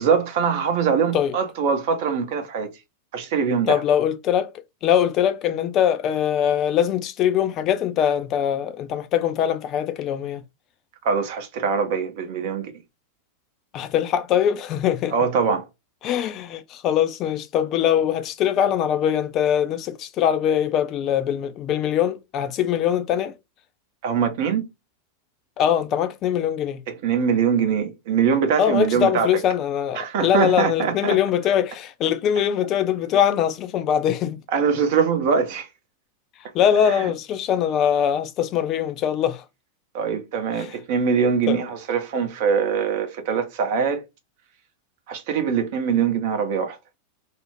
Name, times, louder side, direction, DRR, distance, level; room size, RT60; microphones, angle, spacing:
voice 1, 0.0-2.7 3.1-3.8 11.0-12.7 15.1-15.7 24.0-24.6 26.9-29.3 29.9-31.2 34.5-35.7 36.9-37.1 39.9-44.0 45.1-46.8, right 6 dB, 50° right, 0.7 m, -22 dB
voice 2, 3.7-4.5 4.8-10.4 13.7-15.1 16.0-23.3 25.6-26.8 28.6-34.4 36.5-39.4 40.6-40.8 41.5-41.6, left 9 dB, 35° left, 0.3 m, -22 dB
2.5 x 2.1 x 3.0 m
figure-of-eight pair, 90°, 0 cm